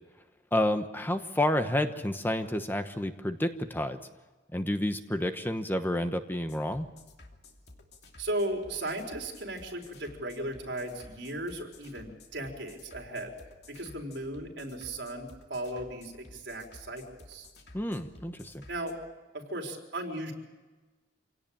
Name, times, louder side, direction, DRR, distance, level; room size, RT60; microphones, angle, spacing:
voice 1, 0.5-4.0 4.5-6.9 17.7-18.6, left 1 dB, 10° left, 8 dB, 1.0 m, -30 dB
sound 1, 6.5-18.9, left 2 dB, 65° left, 2.7 m, -54 dB
voice 2, 8.2-13.3 13.7-17.5 18.7-19.0 19.3-20.3, right 1 dB, 70° right, 2 dB, 4.3 m, -36 dB
26.0 x 17.5 x 8.8 m, 1.2 s
head